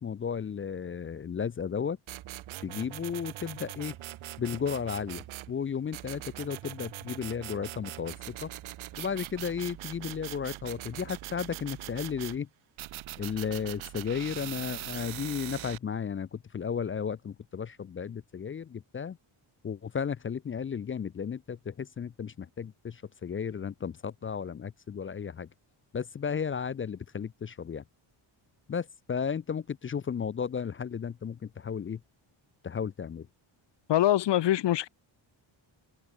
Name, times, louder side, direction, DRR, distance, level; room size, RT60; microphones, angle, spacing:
voice 1, 0.0-2.0 2.6-3.9 4.4-8.5 9.0-12.5 13.2-19.2 19.6-25.5 25.9-27.8 28.7-32.0 32.6-33.3, left 7 dB, 30° left, 0.3 m, -34 dB
sound 1, 2.1-5.5 5.9-12.4 12.8-15.8, right 15 dB, 70° right, 0.8 m, -42 dB
voice 2, 33.9-34.9, left 13 dB, 60° left, 0.7 m, -24 dB
wide cardioid pair, 145°, 49 cm